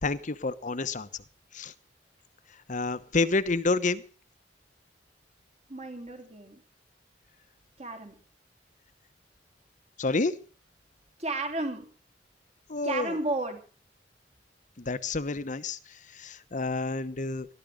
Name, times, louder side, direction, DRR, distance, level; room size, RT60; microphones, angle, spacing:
voice 1, 0.0-1.1 1.5-1.7 2.7-4.0 10.0-10.3 12.7-13.1 14.8-15.8 16.1-17.5, left 3 dB, 45° left, 14 dB, 1.0 m, -29 dB
voice 2, 5.7-6.6 7.8-8.1 11.2-11.9 12.8-13.6, right 2 dB, 40° right, 5 dB, 3.4 m, -32 dB
19.5 x 13.0 x 5.2 m, 0.39 s
head